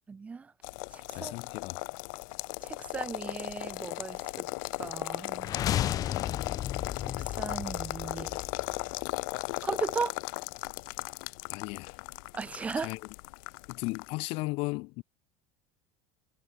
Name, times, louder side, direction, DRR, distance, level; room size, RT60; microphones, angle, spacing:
voice 1, 0.1-0.5 0.9-1.3 2.6-4.5 4.8-5.6 7.0-8.4 9.6-10.1 12.3-12.9, right 5 dB, 10° right, 0.5 m, -37 dB
sound 1, 0.6-14.1, left 30 dB, 65° left, 2.4 m, -37 dB
voice 2, 1.1-1.8 11.5-12.0 12.7-13.0 13.7-15.0, left 25 dB, 45° left, 1.2 m, -35 dB
sound 2, 5.4-9.4, left 11 dB, 30° left, 3.0 m, -34 dB
cardioid pair, 175°, 13 cm